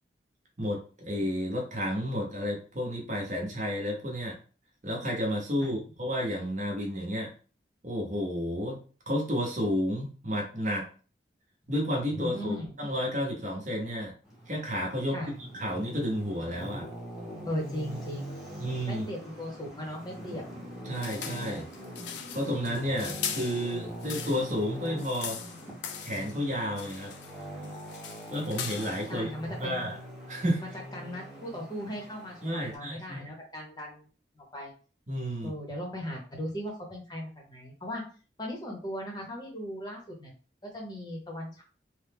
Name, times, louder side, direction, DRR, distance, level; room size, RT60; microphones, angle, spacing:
voice 1, 0.6-4.4 4.8-7.3 7.8-8.8 9.1-10.9 11.7-14.1 14.5-15.2 15.5-16.8 18.6-19.1 20.9-21.6 22.3-25.4 26.0-27.1 28.3-29.3 29.6-30.0 30.3-30.6 32.4-33.2 35.1-35.5, equal, 45° right, -1 dB, 0.8 m, -31 dB
voice 2, 12.1-12.7 15.1-15.3 17.4-18.4 18.8-20.4 29.1-29.9 30.6-34.1 34.4-34.7 35.4-38.0 38.4-40.3 40.7-41.6, equal, 25° left, -1 dB, 0.8 m, -38 dB
Traffic noise roadway noise, 14.2-32.7, equal, ahead, 0.8 m, -42 dB
sound 1, 20.9-24.6 24.9-26.4 26.8-27.4 27.6-29.1, left 8 dB, 85° left, 0.4 m, -40 dB
3.2 x 2.1 x 3.4 m, 0.38 s
head